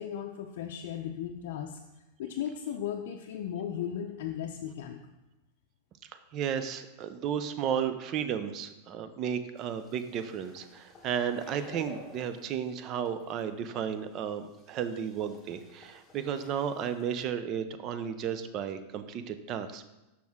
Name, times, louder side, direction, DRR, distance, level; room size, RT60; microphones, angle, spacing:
voice 1, 0.0-1.8 2.2-5.0, left 9 dB, 65° left, 2 dB, 0.5 m, -36 dB
voice 2, 6.3-19.9, right 8 dB, 35° right, 11 dB, 0.5 m, -33 dB
sound 1, 9.6-12.6 13.0-13.4 14.0-14.1 14.4-17.2, equal, 10° left, 1.3 m, -53 dB
6.2 x 5.9 x 3.6 m, 1.0 s
supercardioid pair, 140°, 0 cm